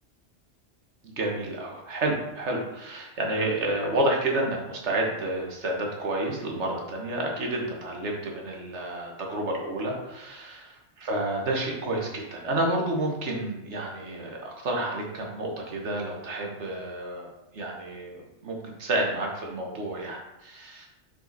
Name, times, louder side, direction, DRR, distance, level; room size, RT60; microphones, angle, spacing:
voice 1, 1.0-10.7 11.0-17.3 17.5-20.9, right 1 dB, 75° right, 0 dB, 1.5 m, -30 dB
5.6 x 5.0 x 4.0 m, 0.93 s
omnidirectional pair, 1.2 m